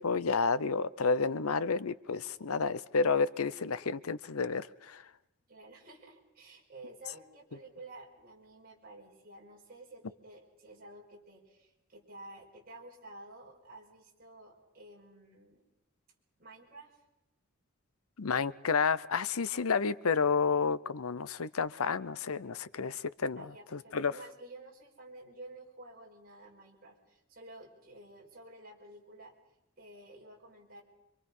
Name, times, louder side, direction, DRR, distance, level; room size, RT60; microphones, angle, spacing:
voice 1, 0.0-5.0 18.2-24.2, left 5 dB, 85° left, 17 dB, 0.7 m, -30 dB
voice 2, 5.5-15.6 16.4-17.0 23.4-29.3 29.8-30.8, right 2 dB, 40° right, -1 dB, 4.9 m, -52 dB
26.0 x 24.5 x 5.5 m, 0.89 s
head